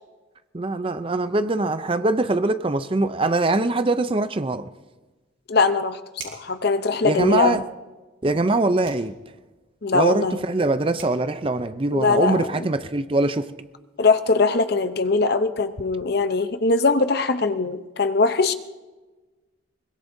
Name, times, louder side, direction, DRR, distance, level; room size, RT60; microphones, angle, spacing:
voice 1, 0.5-4.7 7.0-7.6 8.2-9.1 9.9-13.5, right 2 dB, 25° right, 0.5 m, -23 dB
voice 2, 5.5-6.0 6.2-7.6 9.8-10.4 11.9-12.5 14.0-18.5, left 3 dB, 50° left, 0.7 m, -21 dB
sound 1, 6.1-6.6 8.8-9.1 10.6-10.7 11.0-11.2, right 6 dB, 75° right, 4.4 m, -40 dB
22.5 x 21.5 x 2.7 m
head